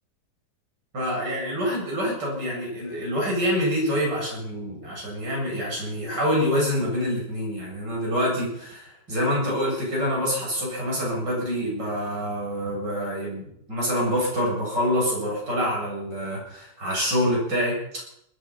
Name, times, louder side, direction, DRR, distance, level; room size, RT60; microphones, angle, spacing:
voice 1, 0.9-18.0, equal, 80° right, -2 dB, 8.3 m, -26 dB
20.0 x 12.5 x 5.8 m, 0.75 s
omnidirectional pair, 1.9 m